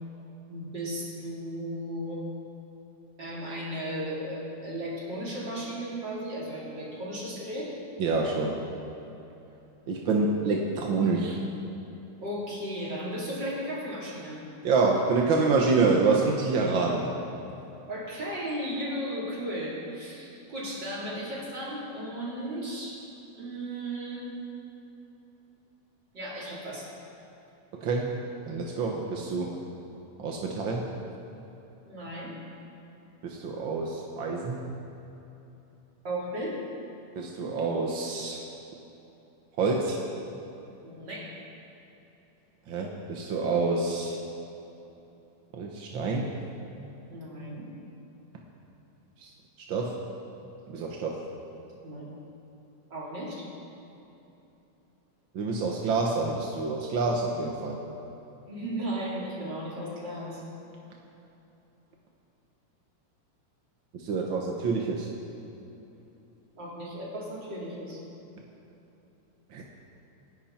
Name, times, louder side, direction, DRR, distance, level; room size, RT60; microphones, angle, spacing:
voice 1, 0.5-2.2 3.2-7.7 10.2-10.3 12.2-14.4 17.9-23.0 23.4-24.3 26.1-26.9 31.8-32.3 36.0-36.6 40.8-41.4 47.1-47.7 51.8-52.1 52.9-53.5 58.5-60.4 66.6-68.0, equal, 35° right, -6 dB, 4.4 m, -35 dB
voice 2, 8.0-8.5 9.9-11.4 14.6-17.1 27.7-28.2 28.4-29.6 30.2-30.9 33.2-34.7 37.1-38.4 39.6-40.0 42.7-44.2 45.5-46.3 49.2-49.3 49.7-50.0 50.7-51.2 55.3-57.8 63.9-65.1 69.5-69.6, right 4 dB, 55° right, -1 dB, 1.4 m, -27 dB
28.5 x 11.0 x 4.4 m, 3.0 s
omnidirectional pair, 3.6 m